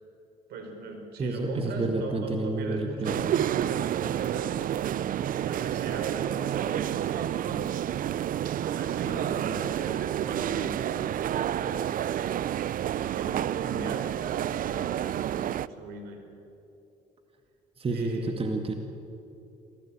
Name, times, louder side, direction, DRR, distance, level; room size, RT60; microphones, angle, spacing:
voice 1, 0.5-4.7 5.4-8.1 8.6-11.9 12.9-15.0 15.3-16.2 17.9-18.5, right 3 dB, 75° right, 4 dB, 5.2 m, -39 dB
voice 2, 1.2-3.2 17.8-18.7, right 2 dB, 35° right, 4 dB, 2.1 m, -30 dB
sound 1, 3.0-15.7, right 11 dB, 55° right, 0.6 m, -29 dB
26.0 x 17.5 x 9.0 m, 3.0 s
supercardioid pair, 65°, 17 cm